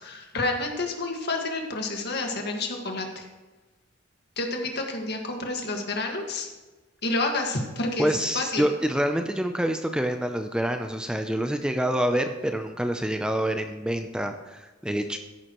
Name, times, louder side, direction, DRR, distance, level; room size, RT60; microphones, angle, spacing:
voice 1, 0.0-3.2 4.4-6.5 7.0-8.6, left 2 dB, 55° left, 2 dB, 1.8 m, -29 dB
voice 2, 8.0-15.2, right 1 dB, 5° right, 6 dB, 0.5 m, -27 dB
14.0 x 11.0 x 3.1 m, 1.2 s
head